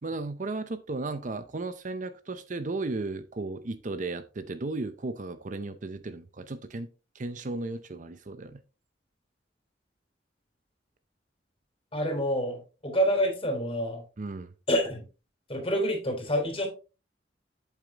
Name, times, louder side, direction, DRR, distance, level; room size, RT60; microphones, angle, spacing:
voice 1, 0.0-6.9 7.1-8.6 14.2-14.5, right 3 dB, 45° right, 0.6 m, -35 dB
voice 2, 11.9-14.0 14.7-15.0 15.5-16.7, equal, 30° left, 3.6 m, -27 dB
8.3 x 7.4 x 2.9 m
head